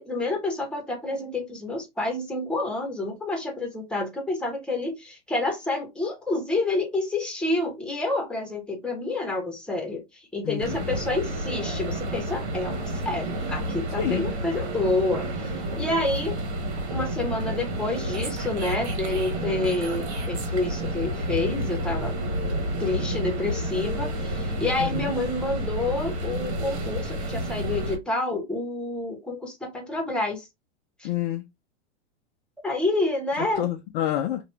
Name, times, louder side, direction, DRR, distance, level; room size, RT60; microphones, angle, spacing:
voice 1, 0.0-12.8 13.0-16.3 16.9-22.2 22.8-30.5 31.0-31.1 32.6-33.7, left 2 dB, 5° left, 1.3 m, -28 dB
voice 2, 10.4-10.9 14.0-14.3 19.4-19.8 24.8-25.1 31.0-31.4 33.5-34.4, left 12 dB, 50° left, 0.6 m, -29 dB
sound 1, 10.6-28.0, right 1 dB, 70° right, 1.4 m, -30 dB
2.9 x 2.6 x 3.1 m
hypercardioid pair, 110°, 33 cm